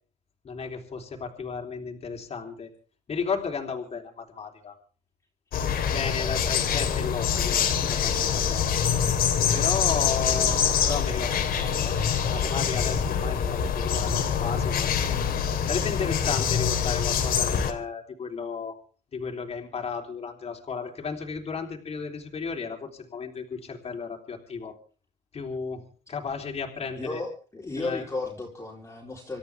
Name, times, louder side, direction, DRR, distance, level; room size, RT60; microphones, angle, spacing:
voice 1, 0.4-2.7 3.1-4.8 5.9-8.8 9.5-12.0 12.3-14.9 15.7-18.8 19.1-24.8 25.3-25.8 26.1-27.2 27.7-28.0, left 5 dB, 35° left, 1 dB, 3.5 m, -34 dB
sound 1, 5.5-17.7, left 7 dB, 60° left, 3.0 m, -25 dB
voice 2, 27.0-29.4, left 3 dB, 15° left, -2 dB, 3.9 m, -34 dB
27.5 x 13.5 x 3.5 m, 0.39 s
cardioid pair, 110°, 17 cm